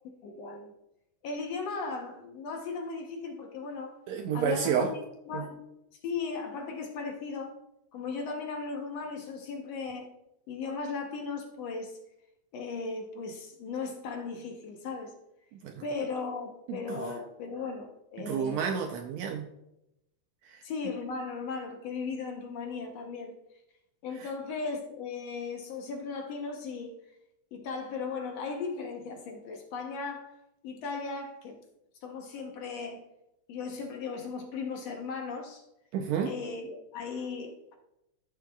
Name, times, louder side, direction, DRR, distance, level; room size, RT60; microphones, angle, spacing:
voice 1, 0.2-0.7 1.2-4.0 4.3-5.0 5.3-5.6 6.0-7.6 7.9-10.1 10.5-12.0 12.5-15.1 15.8-18.7 20.6-23.4 24.0-26.9 27.5-31.6 32.0-33.0 33.5-35.6 36.2-37.7, left 4 dB, 65° left, 3 dB, 1.8 m, -37 dB
voice 2, 4.1-4.9 5.3-5.4 15.6-15.8 16.9-17.0 18.3-19.4 35.9-36.3, right 7 dB, 75° right, 4 dB, 1.6 m, -29 dB
14.0 x 6.6 x 2.3 m, 0.86 s
omnidirectional pair, 3.5 m